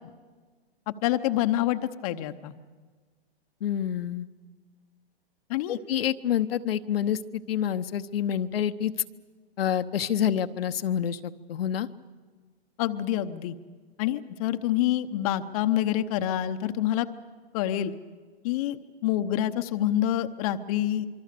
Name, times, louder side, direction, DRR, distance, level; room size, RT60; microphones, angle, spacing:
voice 1, 0.9-2.5 5.5-5.8 12.8-13.6 14.0-17.1 17.5-17.9 18.4-21.1, left 12 dB, 35° left, 8 dB, 0.9 m, -27 dB
voice 2, 3.6-4.3 5.7-8.9 9.6-11.9, left 9 dB, 65° left, 9 dB, 1.0 m, -27 dB
26.0 x 23.5 x 6.8 m, 1.5 s
hypercardioid pair, 140°, 31 cm